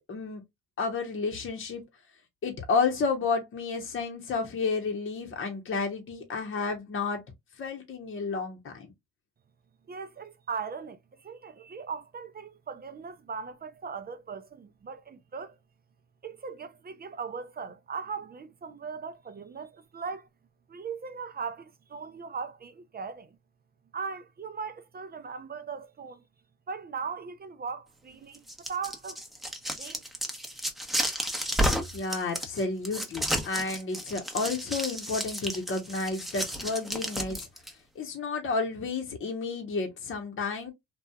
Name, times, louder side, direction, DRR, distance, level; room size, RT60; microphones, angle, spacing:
voice 1, 0.1-0.4 0.8-1.8 2.4-7.2 7.6-8.9 31.9-37.5 37.9-40.7, left 4 dB, 40° left, 0.8 m, -31 dB
voice 2, 9.9-15.6 16.2-20.3 20.7-23.4 23.9-26.2 26.7-29.2 29.7-30.0, right 5 dB, 30° right, 0.4 m, -39 dB
sound 1, 28.3-37.7, equal, ahead, 0.7 m, -32 dB
2.8 x 2.3 x 2.2 m
cardioid pair, 90°, 30 cm